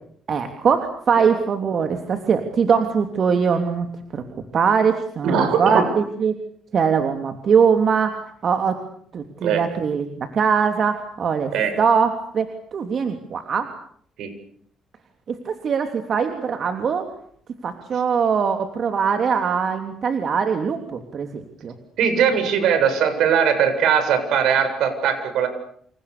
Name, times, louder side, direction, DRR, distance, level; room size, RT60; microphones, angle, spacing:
voice 1, 0.3-4.2 4.5-6.3 6.7-8.8 9.1-13.7 15.3-17.0 17.6-21.7, right 6 dB, 55° right, 6 dB, 3.2 m, -22 dB
voice 2, 5.2-5.9 9.4-9.6 11.5-11.8 14.2-14.3 22.0-25.5, right 7 dB, 80° right, 8 dB, 7.6 m, -20 dB
29.0 x 28.5 x 6.9 m, 0.64 s
cardioid pair, 90°, 0 cm